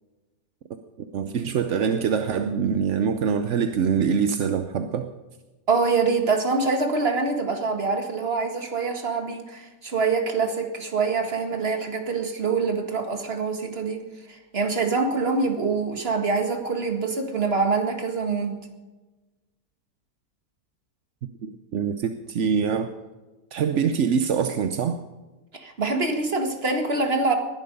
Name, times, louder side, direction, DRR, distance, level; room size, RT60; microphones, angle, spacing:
voice 1, 1.1-5.1 21.4-22.9 23.5-25.0, right 6 dB, 55° right, 8 dB, 0.9 m, -24 dB
voice 2, 5.7-14.0 14.3-18.7 25.5-27.4, right 4 dB, 35° right, 4 dB, 2.0 m, -25 dB
20.5 x 11.5 x 5.4 m, 1.2 s
omnidirectional pair, 1.9 m